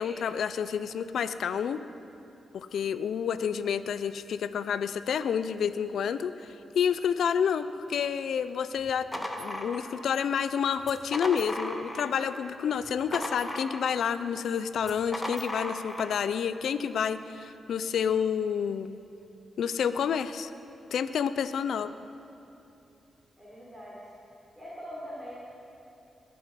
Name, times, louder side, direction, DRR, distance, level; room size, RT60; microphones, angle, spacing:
voice 1, 0.0-1.8 2.5-19.0 19.6-20.5 20.9-21.9, left 7 dB, 75° left, 13 dB, 0.5 m, -29 dB
sound 1, 8.8-10.3 10.8-12.3 12.6-14.1 14.8-16.2, left 1 dB, 10° left, 1.5 m, -36 dB
voice 2, 23.4-24.0 24.6-25.4, equal, 10° right, -8 dB, 4.0 m, -43 dB
21.0 x 8.6 x 5.8 m, 2.9 s
cardioid pair, 90°, 0 cm